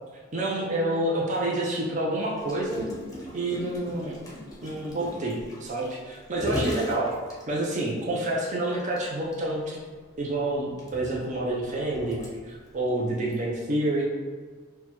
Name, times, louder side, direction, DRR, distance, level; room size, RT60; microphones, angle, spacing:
voice 1, 0.3-2.8 3.3-4.2 4.6-7.1 7.5-9.8 10.2-12.2 12.5-14.1, right 1 dB, 40° right, -3 dB, 0.6 m, -28 dB
Gurgling, 2.4-7.9 8.4-8.5 8.8-9.0 9.3-9.4 10.2-12.7 13.3-13.5, equal, 20° left, 0.7 m, -36 dB
6.0 x 2.2 x 3.0 m, 1.5 s
head